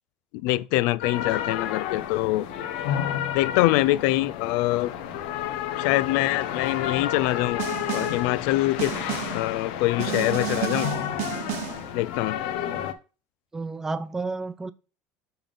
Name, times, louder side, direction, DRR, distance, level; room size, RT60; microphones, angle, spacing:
voice 1, 0.3-2.5 3.3-4.9 5.8-7.6 7.9-8.9 9.3-10.9 11.9-12.4, left 17 dB, 65° left, 0.4 m, -24 dB
sound 1, 1.0-12.9, left 10 dB, 80° left, 1.0 m, -31 dB
Snare drum, 7.6-8.3 8.8-9.5 10.0-11.9, right 14 dB, 55° right, 0.9 m, -32 dB
voice 2, 13.5-14.7, right 3 dB, 10° right, 0.4 m, -31 dB
7.0 x 3.8 x 5.3 m
cardioid pair, 160°, 5 cm